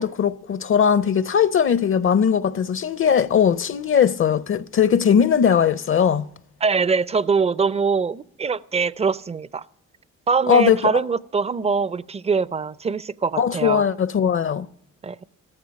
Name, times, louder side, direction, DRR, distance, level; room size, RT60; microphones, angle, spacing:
voice 1, 0.0-6.3 10.5-10.8 13.4-14.7, left 7 dB, 45° left, 0.6 m, -19 dB
voice 2, 6.6-9.6 10.3-13.8 15.0-15.2, right 5 dB, 20° right, 0.4 m, -23 dB
14.5 x 14.0 x 5.2 m
cardioid pair, 90°, 30 cm